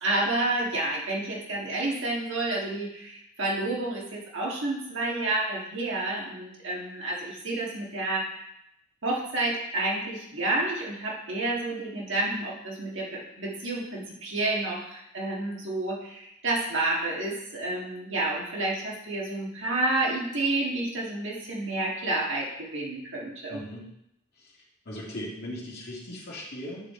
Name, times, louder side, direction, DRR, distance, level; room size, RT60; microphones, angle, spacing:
voice 1, 0.0-8.3 9.0-23.6, right 2 dB, 55° right, -3 dB, 2.0 m, -30 dB
voice 2, 23.5-23.9 24.9-26.9, equal, 45° left, -6 dB, 2.3 m, -38 dB
8.9 x 5.1 x 3.9 m, 0.79 s
head